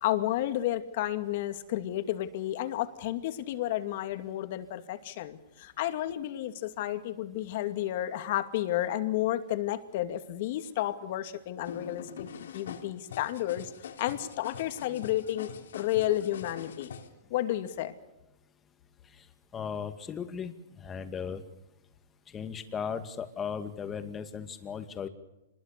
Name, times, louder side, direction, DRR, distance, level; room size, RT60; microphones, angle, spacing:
voice 1, 0.0-13.7 14.0-16.9 17.3-17.9, left 13 dB, 50° left, 9 dB, 2.4 m, -31 dB
sound 1, 11.6-17.1, left 7 dB, 85° left, 3.9 m, -44 dB
voice 2, 19.5-21.4 22.3-25.1, left 7 dB, 15° left, 8 dB, 2.2 m, -36 dB
26.5 x 21.0 x 6.9 m, 0.96 s
hypercardioid pair, 155°, 0 cm